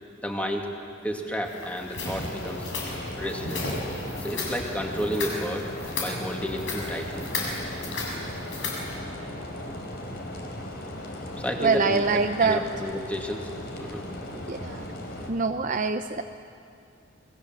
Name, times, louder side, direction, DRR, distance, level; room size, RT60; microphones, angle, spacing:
voice 1, 0.2-0.7 1.0-2.6 3.2-3.7 4.2-5.7 6.0-7.3 11.4-13.5 13.8-14.1, equal, 10° left, 1 dB, 2.5 m, -31 dB
sound 1, 1.4-9.0, left 3 dB, 75° left, 6.9 m, -35 dB
sound 2, 2.0-15.3, left 1 dB, 55° left, 4.1 m, -37 dB
voice 2, 11.6-12.6 14.5-14.9 15.3-16.2, right 4 dB, 40° right, 6 dB, 0.7 m, -24 dB
29.0 x 22.5 x 7.7 m, 2.4 s
head